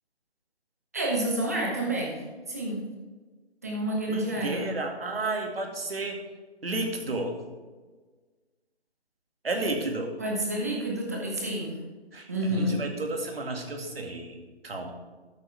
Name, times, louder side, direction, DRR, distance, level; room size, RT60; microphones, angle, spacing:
voice 1, 0.9-2.8 3.6-4.6 10.2-11.8 12.3-12.8, right 1 dB, 15° right, 0 dB, 1.0 m, -29 dB
voice 2, 4.1-6.2 6.6-7.3 9.4-10.1 12.1-14.4 14.6-14.9, right 2 dB, 60° right, 3 dB, 2.2 m, -32 dB
13.5 x 8.2 x 3.4 m, 1.4 s
hypercardioid pair, 175°, 33 cm